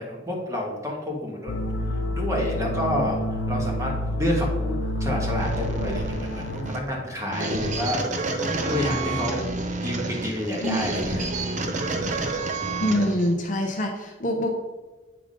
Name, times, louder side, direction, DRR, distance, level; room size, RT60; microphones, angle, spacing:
voice 1, 0.0-1.5 1.9-3.2 3.5-3.9 4.2-4.7 5.0-8.0 8.4-9.5 9.8-11.2, left 1 dB, 15° right, -1 dB, 1.4 m, -29 dB
sound 1, 1.5-6.7, left 1 dB, 70° left, 0.7 m, -28 dB
sound 2, 5.4-13.3, right 2 dB, 35° right, 0.7 m, -29 dB
voice 2, 12.8-14.5, equal, 40° left, 2 dB, 0.9 m, -25 dB
8.9 x 3.7 x 5.2 m, 1.2 s
head